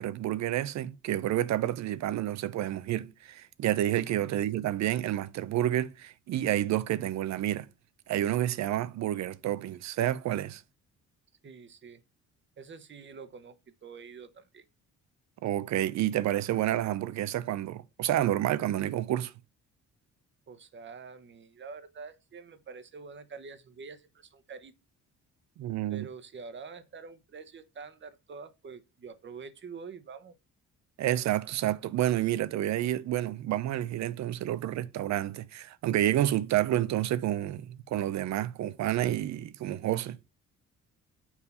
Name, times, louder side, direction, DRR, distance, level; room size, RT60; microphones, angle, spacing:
voice 1, 0.0-7.7 8.1-10.6 15.4-19.3 25.6-26.1 31.0-40.3, right 13 dB, 65° right, 0.5 m, -29 dB
voice 2, 11.4-12.0 12.6-14.6 20.5-24.7 25.9-30.4, right 5 dB, 40° right, 0.9 m, -46 dB
7.2 x 2.8 x 5.4 m
cardioid pair, 90°, 30 cm